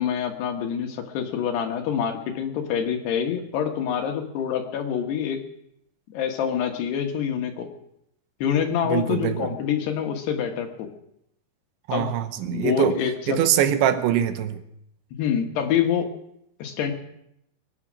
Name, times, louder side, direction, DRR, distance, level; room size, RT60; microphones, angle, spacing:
voice 1, 0.0-5.4 6.1-7.7 8.4-10.9 11.9-12.1 12.5-13.4 15.2-16.1 16.6-16.9, left 8 dB, 70° left, 4 dB, 3.1 m, -26 dB
voice 2, 8.8-9.5 11.9-12.9 13.3-14.6, right 10 dB, 75° right, 9 dB, 3.2 m, -23 dB
22.0 x 9.8 x 6.2 m, 0.78 s
omnidirectional pair, 5.5 m